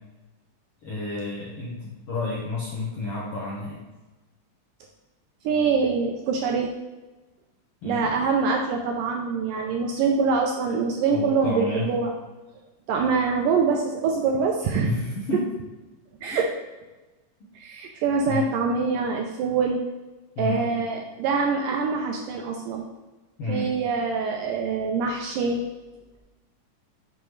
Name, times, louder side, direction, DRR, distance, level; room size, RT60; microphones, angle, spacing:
voice 1, 0.8-3.8 7.8-8.1 11.1-11.9 14.8-15.5 16.3-16.5 18.3-18.5 20.3-20.7 23.4-23.7, left 2 dB, 70° left, -6 dB, 1.4 m, -30 dB
voice 2, 5.5-6.7 7.8-12.1 12.9-14.9 16.2-16.5 17.6-19.8 20.4-22.8 23.5-25.6, right 5 dB, 80° right, 1 dB, 2.0 m, -24 dB
7.1 x 5.7 x 3.2 m, 1.1 s
omnidirectional pair, 4.4 m